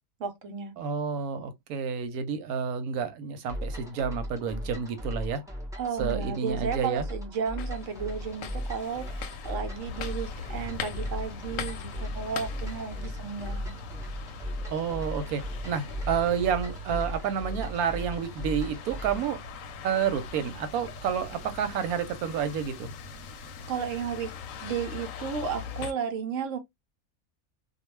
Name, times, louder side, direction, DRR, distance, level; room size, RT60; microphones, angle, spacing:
voice 1, 0.2-0.7 5.8-13.8 23.7-24.3 24.6-26.6, right 6 dB, 65° right, 0.9 m, -33 dB
voice 2, 0.8-5.4 6.0-7.0 14.7-19.4 19.8-22.9, right 7 dB, 85° right, 1.1 m, -30 dB
sound 1, 3.5-19.4, equal, 5° right, 0.5 m, -37 dB
sound 2, 7.6-25.9, left 4 dB, 70° left, 0.9 m, -41 dB
2.3 x 2.3 x 3.0 m
omnidirectional pair, 1.5 m